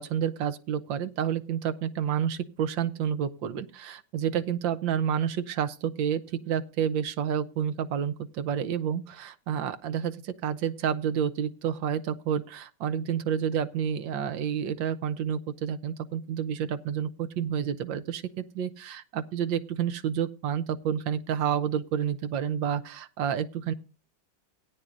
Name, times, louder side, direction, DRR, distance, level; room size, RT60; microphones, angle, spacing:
voice 1, 0.0-23.7, right 8 dB, 85° right, 11 dB, 1.6 m, -29 dB
17.0 x 9.7 x 2.5 m, 0.34 s
omnidirectional pair, 2.0 m